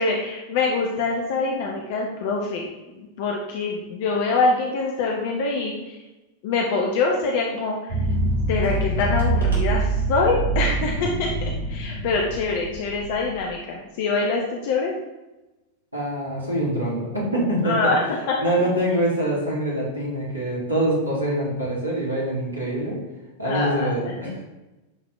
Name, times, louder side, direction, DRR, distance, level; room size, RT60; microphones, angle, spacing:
voice 1, 0.0-2.7 2.9-6.0 6.4-8.0 8.5-11.3 11.7-14.9 17.6-18.0 23.4-23.9, left 3 dB, 50° left, 0 dB, 0.9 m, -24 dB
sound 1, 7.9-13.5, right 2 dB, 75° right, 2.3 m, -25 dB
voice 2, 15.9-17.9 18.4-23.0 23.4-24.3, right 1 dB, 90° left, -5 dB, 2.4 m, -24 dB
10.5 x 4.1 x 3.2 m, 1.0 s
figure-of-eight pair, 90°, 0 cm